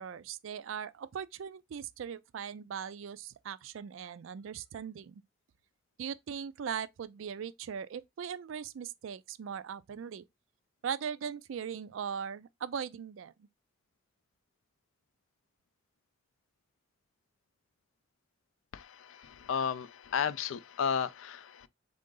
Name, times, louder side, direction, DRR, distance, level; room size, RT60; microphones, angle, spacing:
voice 1, 0.0-5.2 6.0-10.2 10.8-13.5, right 7 dB, 70° right, 0.4 m, -39 dB
voice 2, 18.7-21.7, left 7 dB, 70° left, 0.4 m, -33 dB
3.8 x 3.7 x 3.7 m
head